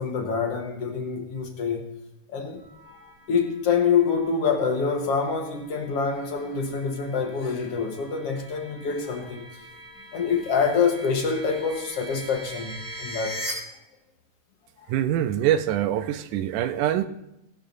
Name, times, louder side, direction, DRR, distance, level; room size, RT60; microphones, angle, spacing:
voice 1, 0.0-1.9 2.3-2.6 3.3-9.5 10.1-13.4, left 5 dB, 60° left, 2.0 m, -26 dB
sound 1, 2.6-13.5, equal, 5° right, 4.0 m, -42 dB
voice 2, 14.9-17.1, right 11 dB, 85° right, 2.2 m, -24 dB
19.0 x 11.0 x 2.6 m
omnidirectional pair, 3.5 m